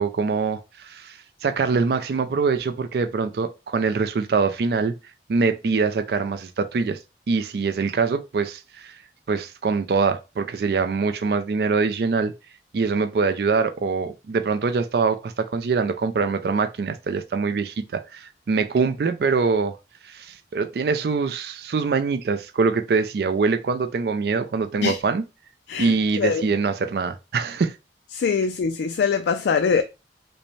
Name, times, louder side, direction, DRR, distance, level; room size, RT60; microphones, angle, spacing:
voice 1, 0.0-4.9 5.3-7.0 7.3-9.0 9.3-12.3 12.7-19.8 20.0-25.2 25.8-27.8, right 4 dB, 60° right, 0.3 m, -24 dB
voice 2, 25.7-26.5 28.1-29.8, left 5 dB, 75° left, 0.3 m, -23 dB
5.2 x 2.1 x 3.1 m
head